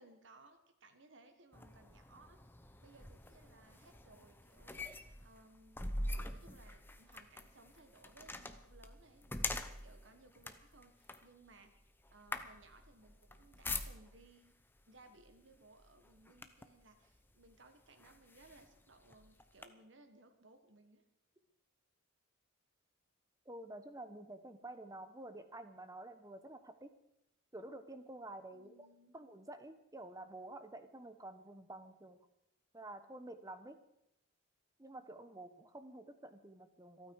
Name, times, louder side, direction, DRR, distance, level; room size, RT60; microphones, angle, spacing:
voice 1, 0.0-2.4 2.8-4.8 5.2-5.8 6.3-11.7 12.1-14.6 14.9-21.0 28.5-29.2, right 2 dB, 60° right, 7 dB, 1.5 m, -62 dB
sound 1, 1.5-14.4 15.2-15.4 15.8-16.8 17.5-17.6 18.0-19.7, left 2 dB, 10° left, 0.8 m, -45 dB
voice 2, 23.5-26.9 27.5-28.8 29.1-32.2 32.7-33.8 34.8-37.1, right 1 dB, 15° right, 9 dB, 1.0 m, -50 dB
26.5 x 9.3 x 4.8 m, 0.83 s
head